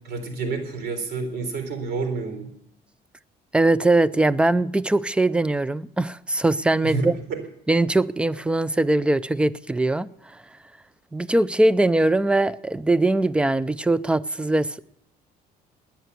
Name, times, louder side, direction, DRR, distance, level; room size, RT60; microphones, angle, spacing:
voice 1, 0.0-2.5 6.8-7.1, right 4 dB, 75° right, 4.0 m, -28 dB
voice 2, 3.5-7.2 7.7-10.1 11.1-14.8, right 2 dB, 5° right, 0.5 m, -21 dB
17.0 x 10.5 x 8.2 m
cardioid pair, 110°, 17 cm